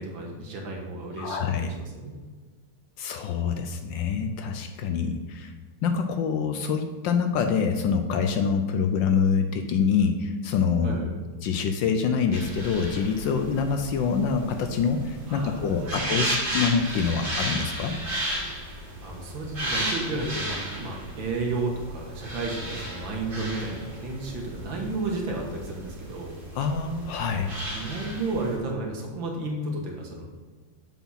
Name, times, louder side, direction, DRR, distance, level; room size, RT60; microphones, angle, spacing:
voice 1, 0.0-2.2 10.8-11.2 15.3-16.3 19.0-26.3 27.7-30.3, right 2 dB, 65° right, 0 dB, 2.1 m, -32 dB
voice 2, 1.2-1.7 3.0-5.5 5.8-11.0 11.4-17.9 26.5-27.5, left 6 dB, 70° left, 7 dB, 1.2 m, -25 dB
sound 1, 12.3-28.6, right 1 dB, 45° right, 2.6 m, -34 dB
7.1 x 6.1 x 5.6 m, 1.3 s
omnidirectional pair, 2.3 m